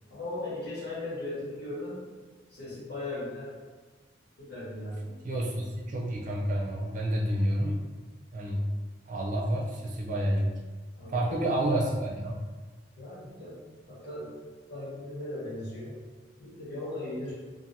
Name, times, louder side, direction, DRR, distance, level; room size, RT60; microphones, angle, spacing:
voice 1, 0.1-2.0 2.5-3.5 4.4-5.1 11.0-11.5 13.0-13.6 13.9-14.3 14.7-15.9 16.4-17.4, left 1 dB, 60° left, -8 dB, 1.2 m, -37 dB
voice 2, 5.2-7.8 8.3-8.7 9.1-10.6 11.1-12.4, right 1 dB, 45° right, -2 dB, 0.4 m, -29 dB
2.8 x 2.5 x 2.6 m, 1.4 s
head